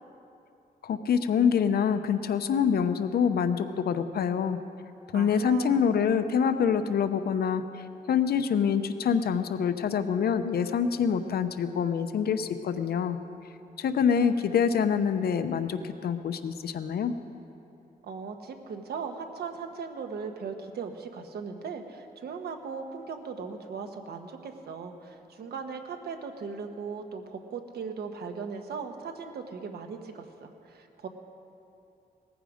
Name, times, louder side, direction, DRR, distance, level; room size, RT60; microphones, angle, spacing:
voice 1, 0.8-4.6 5.1-7.7 8.1-13.2 13.8-17.1, left 7 dB, 75° left, 10 dB, 0.8 m, -26 dB
voice 2, 5.1-5.8 18.0-31.1, right 5 dB, 85° right, 5 dB, 1.2 m, -38 dB
18.5 x 14.5 x 5.1 m, 2.7 s
wide cardioid pair, 130°, 16 cm